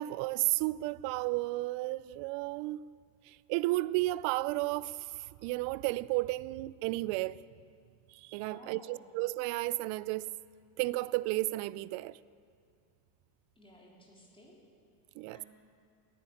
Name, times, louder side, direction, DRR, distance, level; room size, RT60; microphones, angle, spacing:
voice 1, 0.0-2.8 3.3-5.0 5.4-7.4 8.1-10.3 10.8-12.2 15.2-15.4, right 19 dB, 65° right, 0.5 m, -33 dB
voice 2, 8.4-9.1 13.6-14.6 15.3-15.5, left 1 dB, 10° left, 3.6 m, -55 dB
17.5 x 10.0 x 7.1 m
supercardioid pair, 105°, 49 cm